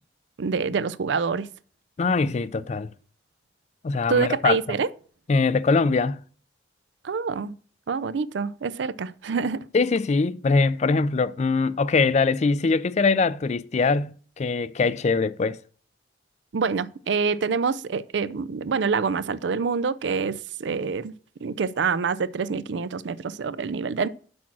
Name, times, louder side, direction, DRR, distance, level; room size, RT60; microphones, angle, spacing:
voice 1, 0.4-1.5 4.1-4.9 7.0-7.5 7.9-9.7 16.5-21.1 21.4-24.1, right 5 dB, 75° right, 0.4 m, -26 dB
voice 2, 2.0-2.9 3.8-4.6 5.3-6.2 9.7-15.6, left 4 dB, 40° left, 0.4 m, -22 dB
6.2 x 6.0 x 6.0 m
head